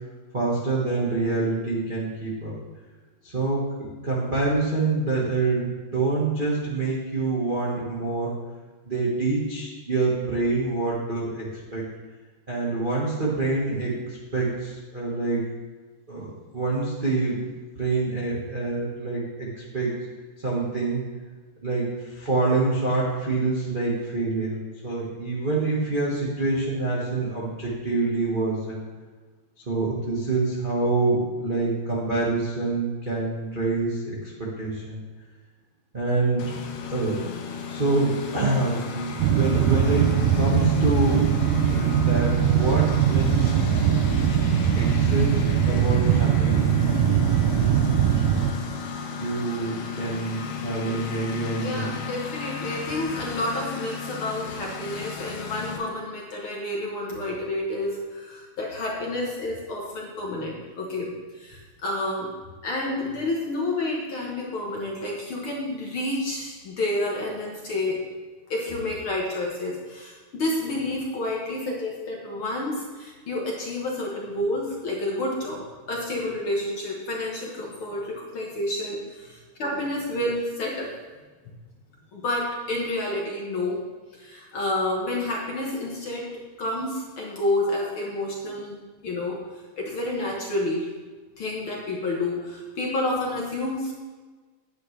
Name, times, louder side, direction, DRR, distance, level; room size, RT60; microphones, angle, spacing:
voice 1, 0.3-2.5 3.2-8.3 8.8-11.9 12.5-15.4 16.1-17.5 17.7-20.0 20.4-21.0 21.6-28.8 29.7-35.0 35.9-36.5 36.9-37.2 37.7-41.4 41.7-43.6 44.7-46.7 49.1-51.9, right 3 dB, 40° right, -6 dB, 0.7 m, -26 dB
Engine, 36.4-55.8, left 6 dB, 85° left, 2.5 m, -34 dB
sound 1, 39.2-48.5, right 9 dB, 85° right, 2.2 m, -21 dB
voice 2, 51.6-62.3 62.6-68.0 68.5-80.9 82.1-83.8 84.2-86.2 86.6-88.8 89.0-90.9 91.4-93.9, left 1 dB, 55° left, -2 dB, 1.7 m, -29 dB
10.0 x 9.2 x 3.3 m, 1.3 s
omnidirectional pair, 3.7 m